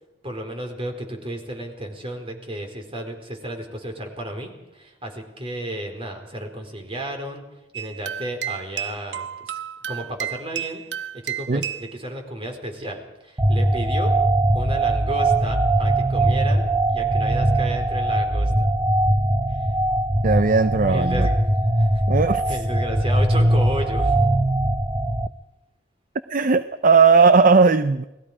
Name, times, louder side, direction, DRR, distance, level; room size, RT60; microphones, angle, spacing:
voice 1, 0.2-7.4 7.7-9.6 9.9-10.8 11.2-14.1 14.5-16.6 16.9-18.5 19.5-19.7 20.9-21.4 21.8-22.0 22.5-24.1, right 1 dB, 30° right, 4 dB, 4.4 m, -33 dB
sound 1, 7.7-12.0, right 10 dB, 80° right, 0.9 m, -32 dB
sound 2, 13.4-25.3, right 1 dB, 15° right, 0.6 m, -21 dB
voice 2, 20.2-21.3 22.1-22.6 26.3-28.0, right 4 dB, 50° right, 12 dB, 0.7 m, -17 dB
29.5 x 19.5 x 5.0 m, 0.95 s
head